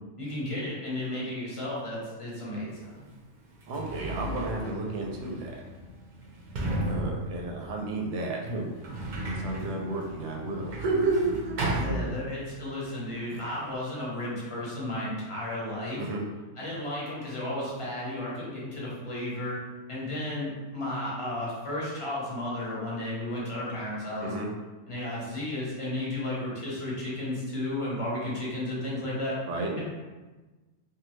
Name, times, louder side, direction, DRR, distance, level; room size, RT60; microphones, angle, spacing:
voice 1, 0.2-3.0 11.8-16.0 16.6-19.6 19.9-24.3 24.9-29.4 29.7-29.8, left 1 dB, 30° left, -7 dB, 0.8 m, -33 dB
Sliding door, 2.8-2.9 3.5-12.7 12.9-13.8, right 1 dB, 55° right, 0.5 m, -35 dB
voice 2, 3.7-5.6 6.8-8.7 9.2-12.1 13.3-13.4 16.0-16.2 24.2-24.5 29.5-29.7, right 2 dB, 85° right, 0 dB, 0.9 m, -32 dB
2.7 x 2.2 x 3.0 m, 1.2 s
omnidirectional pair, 1.2 m